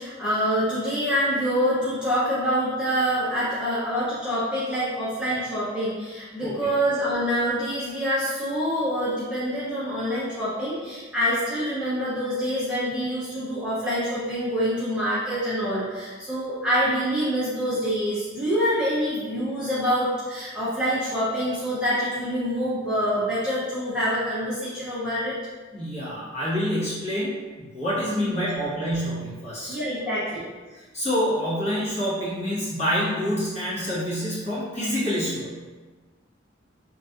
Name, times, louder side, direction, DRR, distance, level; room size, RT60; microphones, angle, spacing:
voice 1, 0.0-25.3 28.2-28.3 28.6-28.7 29.7-30.4, equal, 5° right, -11 dB, 0.6 m, -26 dB
voice 2, 25.7-29.7 30.7-35.5, equal, 35° left, -10 dB, 1.2 m, -27 dB
3.1 x 2.7 x 2.4 m, 1.3 s
head